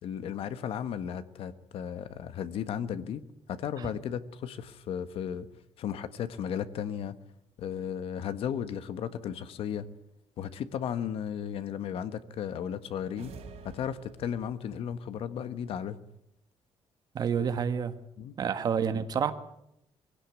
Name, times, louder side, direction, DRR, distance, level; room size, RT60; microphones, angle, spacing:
voice 1, 0.0-3.2 3.5-5.5 5.8-7.2 7.6-9.9 10.4-13.4 13.6-16.0 18.2-18.4, left 8 dB, 65° left, 12 dB, 1.4 m, -35 dB
sound 1, 13.2-14.7, right 5 dB, 85° right, 5.1 m, -48 dB
voice 2, 17.1-18.0 18.4-19.3, right 7 dB, 40° right, 9 dB, 1.6 m, -28 dB
22.5 x 17.0 x 9.6 m, 0.82 s
cardioid pair, 175°, 10 cm